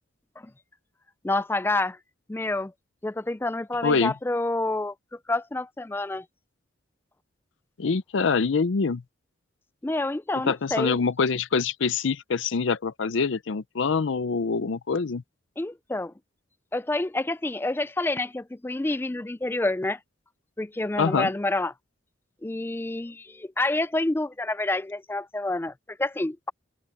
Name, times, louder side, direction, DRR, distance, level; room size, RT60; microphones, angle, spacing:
voice 1, 1.2-2.0 2.3-2.7 3.0-4.9 5.3-6.3 9.8-11.0 15.6-16.1 16.7-20.0 20.6-21.7 22.4-26.5, left 2 dB, 10° left, 0.3 m, -28 dB
voice 2, 3.8-4.1 7.8-9.0 10.4-15.2 21.0-21.3, left 5 dB, 75° left, 0.5 m, -25 dB
head